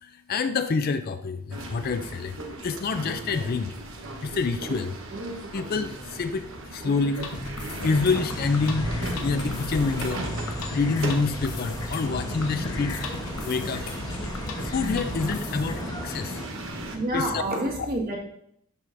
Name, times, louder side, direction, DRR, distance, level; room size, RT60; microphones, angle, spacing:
voice 1, 0.0-2.4 2.6-3.7 4.2-5.0 5.5-7.3 7.8-8.9 9.2-10.2 10.7-13.9 14.7-16.4 17.1-17.4, left 4 dB, 45° left, 10 dB, 0.4 m, -27 dB
sound 1, 1.5-17.0, right 1 dB, 65° right, 1.1 m, -36 dB
sound 2, 7.1-15.8, left 3 dB, 85° left, 1.0 m, -37 dB
sound 3, 8.0-16.5, left 1 dB, 15° left, 0.9 m, -37 dB
voice 2, 16.9-18.2, right 1 dB, 45° right, -2 dB, 1.7 m, -28 dB
12.0 x 4.8 x 2.6 m, 0.72 s
head